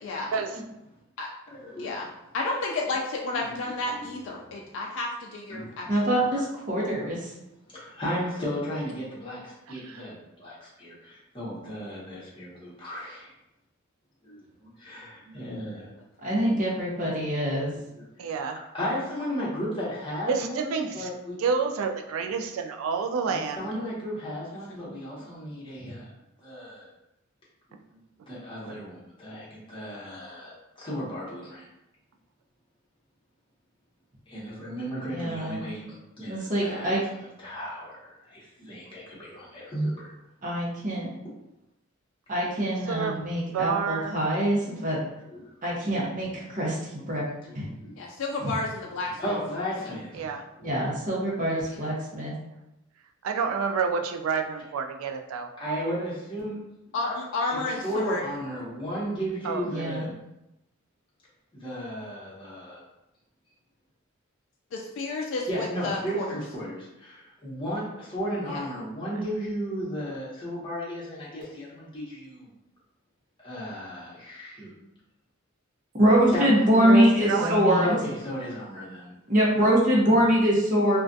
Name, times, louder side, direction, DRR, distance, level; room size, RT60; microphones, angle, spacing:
voice 1, 0.0-0.3 1.2-1.3 1.8-2.1 2.3-5.9 6.3-6.4 48.0-49.4 49.8-49.9 51.7-51.8 56.9-58.2 64.7-66.4 68.5-68.6, left 2 dB, 65° left, -1 dB, 0.3 m, -31 dB
voice 2, 1.5-2.1 3.3-3.6 3.9-4.6 5.5-5.7 7.7-13.3 14.2-15.9 18.0-18.3 18.7-21.4 23.3-26.1 26.4-26.9 27.9-31.6 34.3-37.0 37.4-40.1 41.2-41.3 45.0-45.5 46.9-47.5 47.8-47.9 49.1-50.3 55.6-56.7 57.5-60.2 61.5-62.8 65.5-72.5 73.4-74.7 76.3-76.7 77.8-79.1, equal, 25° left, -7 dB, 0.9 m, -35 dB
voice 3, 5.9-7.3 16.2-17.7 25.8-25.9 35.1-35.6 36.3-37.0 40.4-41.1 42.3-45.0 45.6-46.8 47.1-47.2 47.5-47.7 48.4-48.5 50.6-52.3 59.7-60.0 76.0-78.0 79.3-81.0, right 1 dB, 40° right, -4 dB, 0.7 m, -24 dB
voice 4, 9.7-10.1 18.2-18.6 20.3-21.1 21.4-23.7 28.6-28.7 42.9-43.1 43.5-44.2 50.1-50.4 53.2-55.5 59.4-59.7 77.2-77.7, right 5 dB, 85° right, 4 dB, 0.3 m, -29 dB
2.3 x 2.2 x 2.5 m, 0.89 s
head